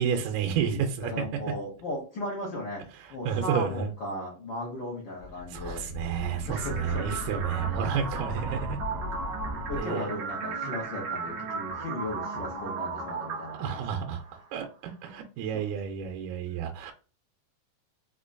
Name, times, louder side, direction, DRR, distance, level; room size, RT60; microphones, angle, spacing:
voice 1, 0.0-1.3 3.2-3.9 5.5-8.8 9.8-10.1 13.6-14.2 14.5-16.9, right 7 dB, 90° right, 2.1 m, -30 dB
voice 2, 1.0-2.8 3.1-5.9 6.5-7.2 9.0-9.1 9.7-14.0 15.5-15.6, left 1 dB, 70° left, 1.1 m, -36 dB
sound 1, 5.2-9.8, left 2 dB, 55° left, 1.3 m, -38 dB
sound 2, 6.6-14.5, right 4 dB, 65° right, 1.6 m, -36 dB
5.1 x 2.2 x 2.5 m
omnidirectional pair, 3.5 m